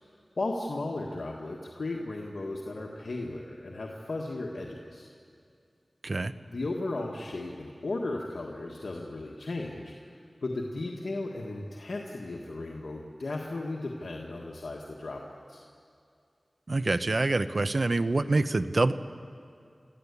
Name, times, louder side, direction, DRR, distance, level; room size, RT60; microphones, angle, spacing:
voice 1, 0.4-5.1 6.5-9.9 10.4-15.6, left 2 dB, 80° left, -1 dB, 1.7 m, -35 dB
voice 2, 16.7-18.9, right 2 dB, 60° right, 12 dB, 0.8 m, -26 dB
26.5 x 14.5 x 8.4 m, 2.4 s
cardioid pair, 40°, 0 cm